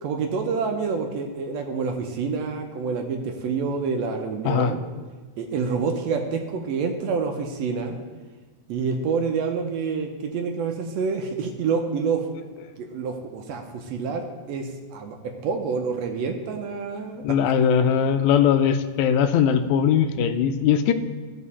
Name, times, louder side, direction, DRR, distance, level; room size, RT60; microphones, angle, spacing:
voice 1, 0.0-4.8 5.4-8.0 8.7-12.2 12.8-15.2 15.4-17.2, right 5 dB, 75° right, 3 dB, 1.6 m, -27 dB
voice 2, 17.2-20.9, left 8 dB, 80° left, 8 dB, 1.7 m, -20 dB
13.5 x 5.0 x 4.2 m, 1.3 s
omnidirectional pair, 3.7 m